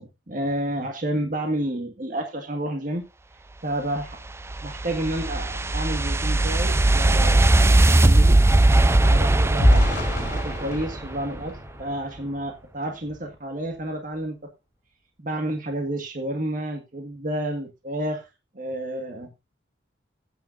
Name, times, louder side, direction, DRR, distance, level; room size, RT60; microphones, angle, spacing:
voice 1, 0.0-3.1 3.6-4.2 4.6-7.6 8.0-8.4 9.0-9.9 10.3-14.5 15.2-18.3 18.5-19.3, right 1 dB, 45° right, 4 dB, 1.7 m, -30 dB
sound 1, 4.0-11.3, right 2 dB, 15° right, 0.5 m, -19 dB
sound 2, 9.6-12.5 13.0-13.2 13.6-13.8, equal, 40° left, 4.0 m, -28 dB
16.0 x 9.3 x 2.6 m, 0.25 s
head